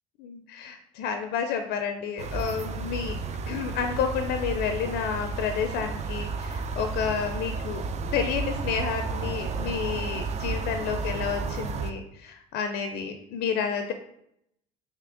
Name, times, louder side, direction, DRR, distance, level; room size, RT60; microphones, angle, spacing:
voice 1, 0.2-3.2 3.5-7.8 8.1-13.9, left 7 dB, 65° left, 6 dB, 0.4 m, -30 dB
sound 1, 2.2-11.9, right 4 dB, 40° right, 0.4 m, -32 dB
sound 2, 7.0-7.3 7.6-8.7 9.0-9.7 10.0-11.9, right 1 dB, 55° right, 1.2 m, -43 dB
3.4 x 2.7 x 3.7 m, 0.76 s
supercardioid pair, 80°, 18 cm